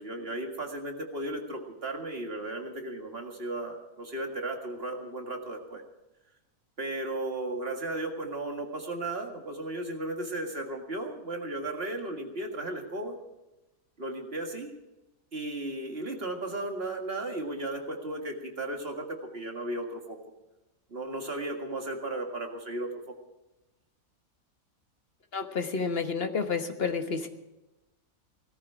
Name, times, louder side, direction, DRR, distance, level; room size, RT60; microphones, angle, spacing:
voice 1, 0.0-5.8 6.8-13.2 14.0-14.7 15.3-20.2 20.9-23.1, right 2 dB, 45° right, 3 dB, 2.1 m, -35 dB
voice 2, 25.3-27.3, left 5 dB, 45° left, 6 dB, 1.4 m, -30 dB
17.5 x 14.0 x 4.8 m, 1.0 s
omnidirectional pair, 1.5 m